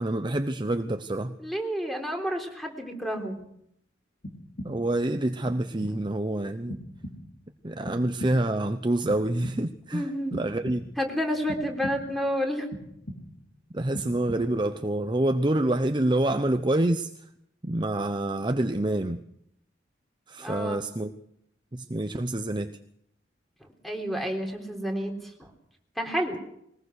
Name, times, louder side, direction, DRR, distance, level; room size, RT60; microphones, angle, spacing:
voice 1, 0.0-1.4 4.6-6.8 7.6-10.8 13.7-17.1 17.6-19.2 20.3-21.1 21.7-22.8, right 1 dB, 25° right, 8 dB, 0.8 m, -27 dB
voice 2, 1.4-3.4 9.9-10.4 11.0-12.7 20.4-20.8 23.8-25.1 26.0-26.4, equal, ahead, 3 dB, 3.7 m, -30 dB
sound 1, 4.2-5.0 5.5-6.2 6.7-7.5 7.9-8.7 9.1-9.9 10.3-11.1 11.5-12.3 12.7-13.5 13.9-14.7, left 1 dB, 55° left, 3.3 m, -40 dB
22.0 x 20.0 x 6.5 m, 0.74 s
head